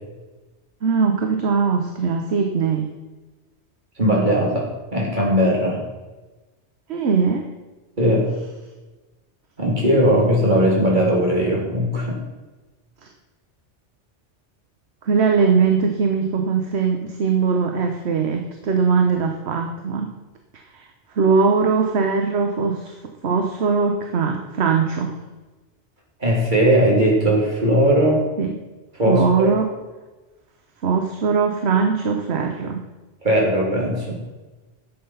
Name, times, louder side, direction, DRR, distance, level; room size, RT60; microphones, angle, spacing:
voice 1, 0.8-2.9 6.9-7.5 13.0-13.1 15.0-20.1 20.5-20.9 21.1-22.9 23.2-25.1 28.4-28.5 29.0-29.7 30.8-32.8, right 5 dB, 65° right, 3 dB, 1.3 m, -20 dB
voice 2, 4.0-5.8 8.0-8.2 9.6-12.2 26.2-28.2 29.0-29.6 33.2-34.2, equal, 40° right, -3 dB, 3.4 m, -18 dB
12.0 x 7.7 x 5.7 m, 1.2 s
omnidirectional pair, 1.2 m